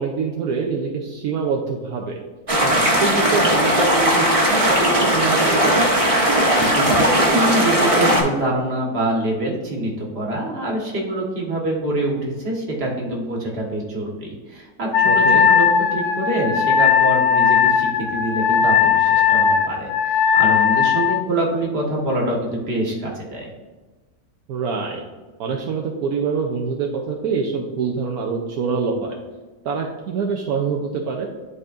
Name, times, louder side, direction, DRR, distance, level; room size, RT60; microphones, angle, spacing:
voice 1, 0.0-2.2 2.6-4.2 4.5-5.9 15.1-15.5 24.5-25.0 25.4-29.1 29.6-31.3, right 5 dB, 75° right, 0 dB, 1.2 m, -25 dB
sound 1, 2.5-8.2, equal, 25° right, 1.1 m, -18 dB
voice 2, 6.5-15.7 15.9-23.5, right 1 dB, 40° right, -2 dB, 1.6 m, -25 dB
Wind instrument woodwind instrument, 14.9-21.3, left 7 dB, 65° left, 0.8 m, -17 dB
11.5 x 4.1 x 2.5 m, 1.3 s
omnidirectional pair, 1.6 m